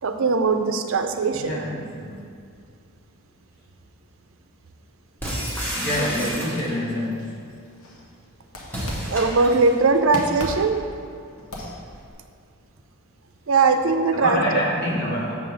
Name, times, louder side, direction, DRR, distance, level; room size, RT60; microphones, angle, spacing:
voice 1, 0.0-1.6 9.1-10.9 13.5-14.5, right 4 dB, 65° right, 7 dB, 0.5 m, -20 dB
voice 2, 1.3-2.2 5.7-7.4 14.1-15.4, equal, 45° left, -4 dB, 1.5 m, -26 dB
sound 1, 5.2-6.9 8.7-9.8, equal, 10° left, 1.2 m, -30 dB
sound 2, 6.6-8.1 8.5-9.5 9.9-12.1, left 1 dB, 75° left, 1.1 m, -37 dB
6.9 x 3.9 x 6.5 m, 2.2 s
head